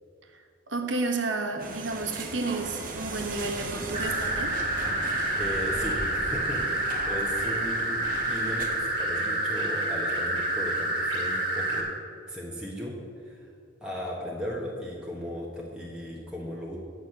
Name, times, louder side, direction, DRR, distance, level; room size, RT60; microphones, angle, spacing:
voice 1, 0.3-4.6, right 3 dB, 75° right, 4 dB, 1.2 m, -31 dB
sound 1, 1.6-8.8, right 2 dB, 45° right, 1.0 m, -38 dB
sound 2, 3.9-11.8, right 1 dB, 25° right, 2.0 m, -28 dB
voice 2, 5.3-11.9 12.3-12.9 13.2-13.5 13.8-16.8, equal, 5° right, -4 dB, 1.1 m, -36 dB
9.1 x 6.1 x 6.5 m, 2.5 s
head